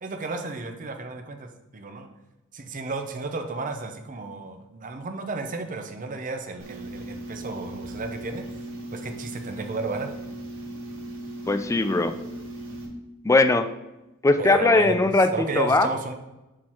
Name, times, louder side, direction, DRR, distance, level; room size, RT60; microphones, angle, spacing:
voice 1, 0.0-2.1 2.5-8.4 8.9-10.1 14.4-16.1, right 3 dB, 40° right, 5 dB, 0.6 m, -32 dB
sound 1, 6.6-12.9, right 1 dB, 65° right, 2.0 m, -38 dB
voice 2, 11.5-12.1 13.2-13.7 14.2-15.9, left 2 dB, 15° left, 9 dB, 0.3 m, -20 dB
6.4 x 3.8 x 4.4 m, 0.98 s
head